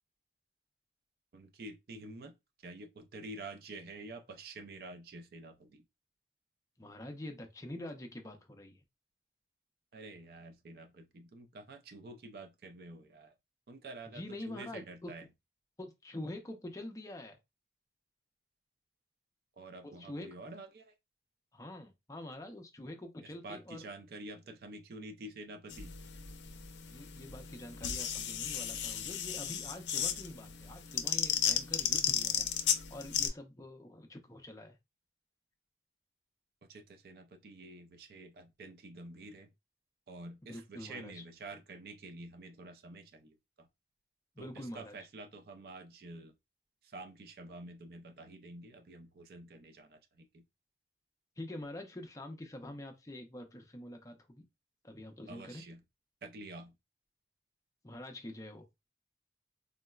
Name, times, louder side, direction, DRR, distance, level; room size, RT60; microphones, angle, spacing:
voice 1, 1.3-5.8 9.9-13.3 13.7-15.3 19.6-21.0 23.2-26.0 36.6-39.5 40.1-43.7 44.4-46.3 46.8-50.4 55.3-55.8 56.2-56.8, right 2 dB, 55° right, 0.4 m, -48 dB
voice 2, 6.8-8.8 14.1-15.1 15.8-17.4 19.8-20.3 21.5-23.9 26.8-34.8 40.4-41.2 44.4-45.0 51.4-54.4 54.8-55.6 57.8-58.7, left 1 dB, 20° left, 0.4 m, -46 dB
sound 1, 25.7-33.3, left 9 dB, 85° left, 0.4 m, -34 dB
3.7 x 2.1 x 2.2 m
head